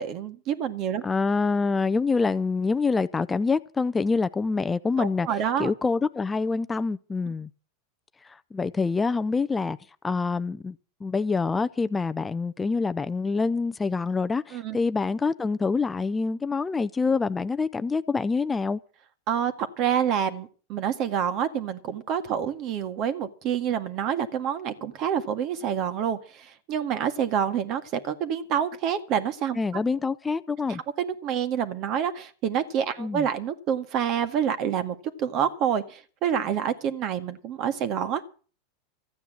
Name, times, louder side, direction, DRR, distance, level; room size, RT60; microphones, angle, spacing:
voice 1, 0.0-1.0 5.0-5.7 14.5-14.8 19.3-29.8 30.7-38.2, right 8 dB, 45° right, 1.9 m, -27 dB
voice 2, 1.0-5.3 5.6-7.5 8.2-9.8 10.0-10.8 11.0-18.8 29.6-30.8 33.0-33.3, left 4 dB, 15° left, 0.6 m, -26 dB
14.0 x 9.3 x 7.6 m
hypercardioid pair, 115°, 0 cm